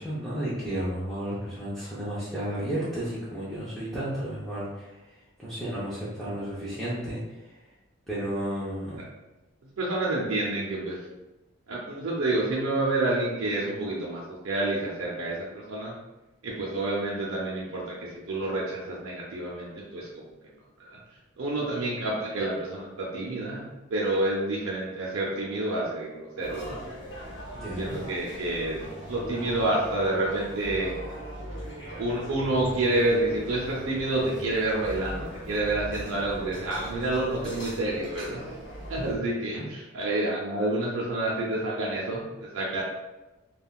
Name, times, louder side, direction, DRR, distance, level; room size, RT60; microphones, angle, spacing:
voice 1, 0.0-7.6 8.1-9.0 27.5-27.9 39.5-39.6, right 1 dB, ahead, -10 dB, 0.5 m, -33 dB
voice 2, 9.6-11.0 11.7-15.9 16.4-20.3 20.8-21.0 21.4-26.8 27.8-30.9 32.0-38.4 38.9-42.8, right 2 dB, 70° right, -4 dB, 0.5 m, -29 dB
sound 1, 26.4-39.2, equal, 50° left, 0.7 m, -40 dB
3.5 x 2.3 x 2.3 m, 1.1 s
head